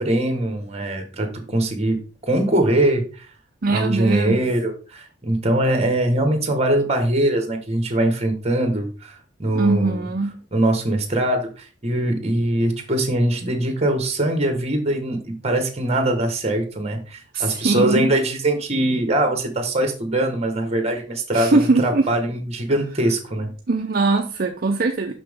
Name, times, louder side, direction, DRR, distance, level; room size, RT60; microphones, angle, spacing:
voice 1, 0.0-2.0 2.2-3.2 3.7-10.0 10.5-23.5, right 1 dB, 35° right, 6 dB, 1.4 m, -22 dB
voice 2, 3.6-4.4 9.5-10.3 17.3-18.1 21.3-22.1 23.7-25.1, right 3 dB, 50° right, 4 dB, 0.6 m, -21 dB
6.2 x 5.9 x 3.6 m, 0.36 s
head